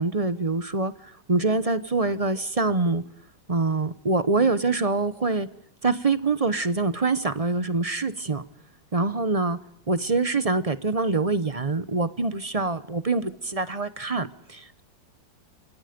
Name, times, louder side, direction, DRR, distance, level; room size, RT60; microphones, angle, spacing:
voice 1, 0.0-3.0 3.5-5.5 5.8-8.4 8.9-9.6 9.9-14.8, right 3 dB, 30° right, 13 dB, 0.7 m, -25 dB
27.5 x 24.5 x 5.2 m, 0.70 s
omnidirectional pair, 1.9 m